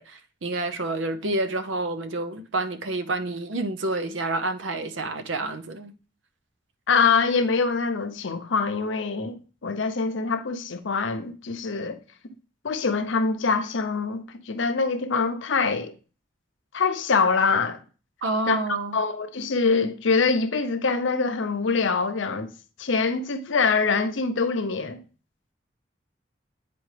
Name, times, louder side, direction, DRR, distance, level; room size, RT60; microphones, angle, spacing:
voice 1, 0.0-5.9 18.2-19.0, right 2 dB, 80° right, 0.6 m, -29 dB
voice 2, 6.9-12.0 12.6-15.9 16.7-17.8 18.5-18.6 18.9-22.5 22.8-25.0, left 4 dB, 80° left, 0.6 m, -24 dB
9.2 x 4.2 x 3.2 m
head